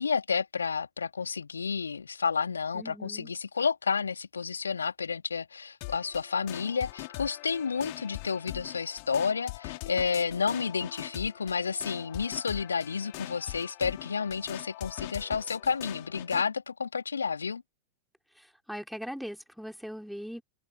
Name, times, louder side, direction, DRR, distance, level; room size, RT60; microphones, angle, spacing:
voice 1, 0.0-17.6, left 5 dB, 75° left, 2.7 m, -31 dB
voice 2, 2.7-3.3 18.4-20.4, equal, ahead, 4.2 m, -40 dB
sound 1, 5.8-16.5, left 31 dB, 45° left, 3.6 m, -42 dB
figure-of-eight pair, 90°, 0 cm